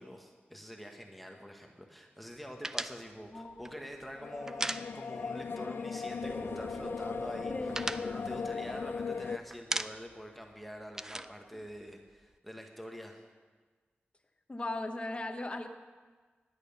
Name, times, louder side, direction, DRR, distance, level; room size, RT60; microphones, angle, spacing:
voice 1, 0.0-13.2, equal, ahead, 2 dB, 1.3 m, -46 dB
sound 1, 2.6-5.4 5.7-5.9 6.2-6.8 7.2-9.2 9.5-10.3 10.5-12.3, right 1 dB, 15° right, 0.4 m, -38 dB
voice 2, 3.3-3.7 7.5-7.7 14.5-15.7, left 2 dB, 30° left, 6 dB, 1.1 m, -37 dB
sound 2, 4.2-9.4, left 5 dB, 65° left, 0.4 m, -38 dB
sound 3, 6.2-10.4, equal, 35° right, 3.9 m, -45 dB
16.0 x 11.0 x 5.5 m, 1.4 s
wide cardioid pair, 100°, 4 cm